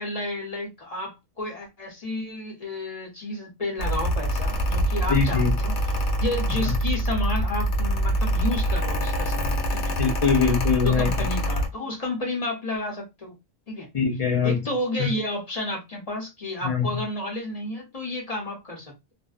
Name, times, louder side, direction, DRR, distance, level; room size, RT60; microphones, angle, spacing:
voice 1, 0.0-5.7 6.2-9.9 10.8-13.4 13.7-13.9 14.4-19.1, left 1 dB, 35° left, 0.8 m, -31 dB
Mechanical fan, 3.8-11.7, equal, 70° left, 0.9 m, -25 dB
voice 2, 5.1-5.6 10.0-11.1 13.9-14.6 15.0-15.1 16.6-16.8, left 6 dB, 50° left, 0.4 m, -22 dB
2.5 x 2.1 x 2.3 m
omnidirectional pair, 1.2 m